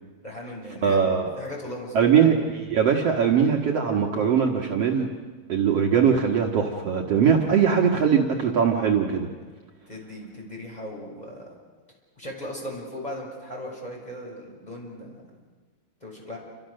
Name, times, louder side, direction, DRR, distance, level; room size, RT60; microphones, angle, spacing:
voice 1, 0.2-2.3 9.9-11.5 12.2-15.2 16.0-16.4, left 1 dB, 10° left, -2 dB, 5.9 m, -37 dB
voice 2, 0.8-1.3 1.9-5.1 5.5-9.3, right 7 dB, 70° right, 0 dB, 1.5 m, -21 dB
29.0 x 27.0 x 6.6 m, 1.4 s
omnidirectional pair, 5.3 m